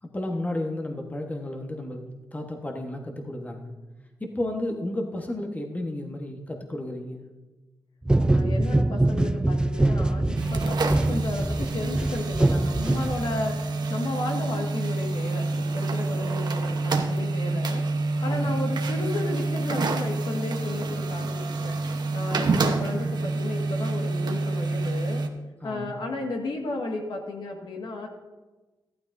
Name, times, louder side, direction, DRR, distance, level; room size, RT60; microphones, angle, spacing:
voice 1, 0.1-3.7 4.2-7.2 18.2-18.7 25.6-25.9, left 1 dB, 20° left, 3 dB, 1.3 m, -32 dB
sound 1, 8.0-13.6, right 2 dB, 10° right, 0.3 m, -24 dB
voice 2, 8.2-17.9 18.2-21.8 22.1-25.2 25.6-28.1, left 2 dB, 70° left, 1 dB, 1.8 m, -33 dB
sound 2, 10.3-25.3, right 3 dB, 60° right, 1.1 m, -27 dB
14.0 x 12.5 x 2.7 m, 1.2 s
cardioid pair, 70°, 8 cm